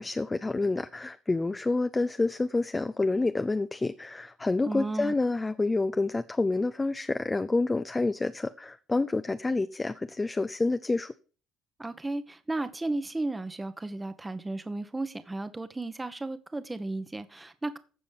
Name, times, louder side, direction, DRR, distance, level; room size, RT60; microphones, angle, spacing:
voice 1, 0.0-11.1, left 3 dB, 20° left, 0.7 m, -28 dB
voice 2, 4.6-5.1 11.8-17.8, right 2 dB, 15° right, 1.2 m, -34 dB
15.0 x 5.0 x 5.9 m
supercardioid pair, 80°, 0 cm